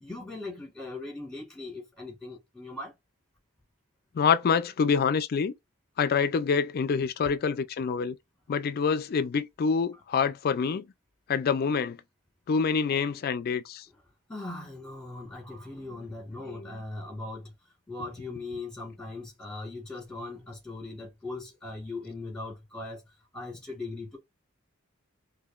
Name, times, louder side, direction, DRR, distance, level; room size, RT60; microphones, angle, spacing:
voice 1, 0.0-2.9 14.3-17.5 17.9-23.0 23.3-24.2, left 2 dB, 5° left, 1.8 m, -39 dB
voice 2, 4.1-5.5 6.0-8.2 8.5-10.9 11.3-12.0 12.5-13.9 15.9-16.1 16.4-16.8, left 6 dB, 45° left, 0.3 m, -26 dB
4.9 x 2.6 x 2.4 m
head